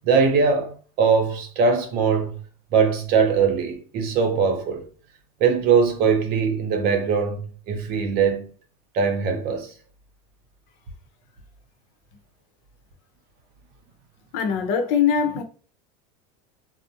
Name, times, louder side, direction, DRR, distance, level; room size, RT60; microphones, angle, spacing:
voice 1, 0.0-2.4 2.7-4.9 5.4-8.5 8.9-9.7, right 5 dB, 55° right, 0.7 m, -21 dB
voice 2, 14.3-15.4, left 7 dB, 65° left, 0.7 m, -22 dB
2.5 x 2.0 x 2.7 m
supercardioid pair, 120°, 19 cm